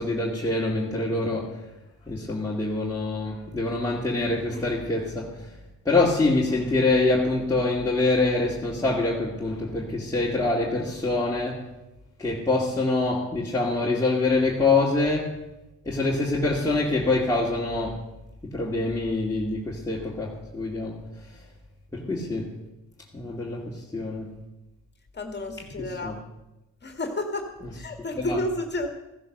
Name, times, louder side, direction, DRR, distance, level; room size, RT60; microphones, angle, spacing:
voice 1, 0.0-1.6 2.1-5.4 5.9-11.7 12.2-15.3 15.8-18.0 18.4-21.0 21.9-22.5 23.1-24.3 25.8-26.1 28.2-28.4, left 2 dB, 10° left, -4 dB, 2.3 m, -25 dB
voice 2, 25.1-26.2 26.8-27.5 27.7-28.9, left 1 dB, 35° left, 5 dB, 2.0 m, -31 dB
15.0 x 10.5 x 6.6 m, 0.98 s
cardioid pair, 80°, 32 cm